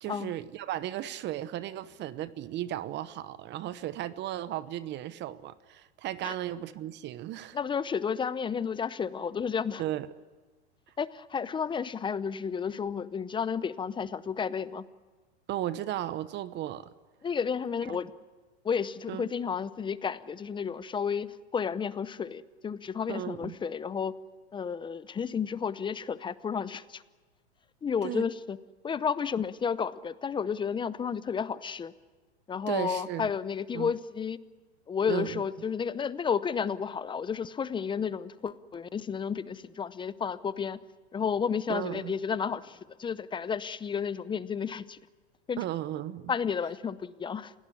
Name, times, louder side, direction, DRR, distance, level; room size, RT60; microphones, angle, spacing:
voice 1, 0.0-7.6 9.8-10.1 15.5-16.9 17.9-18.0 19.1-19.3 23.1-23.6 28.0-28.3 32.7-33.3 33.7-33.9 35.1-35.4 41.7-42.1 45.6-46.3, right 13 dB, 35° right, 1.0 m, -35 dB
voice 2, 7.5-9.8 11.0-14.9 17.2-18.1 18.6-24.1 24.5-27.0 27.8-28.6 28.8-31.9 32.5-34.4 34.9-40.8 41.1-45.0 45.5-45.6 46.3-47.5, left 6 dB, 15° left, 0.7 m, -32 dB
27.5 x 17.5 x 10.0 m
hypercardioid pair, 120°, 33 cm